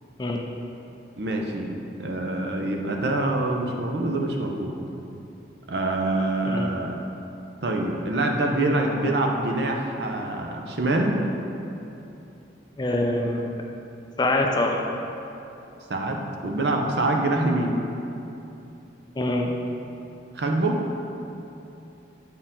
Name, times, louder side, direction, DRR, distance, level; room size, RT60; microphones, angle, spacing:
voice 1, 1.2-1.7 2.0-4.7 5.7-7.0 7.6-11.2 15.9-17.7 20.4-20.8, right 2 dB, 65° right, 1 dB, 0.7 m, -25 dB
voice 2, 12.8-13.5 14.2-14.9 19.2-19.5, left 2 dB, 20° left, 1 dB, 0.4 m, -24 dB
8.2 x 4.5 x 3.7 m, 2.8 s
head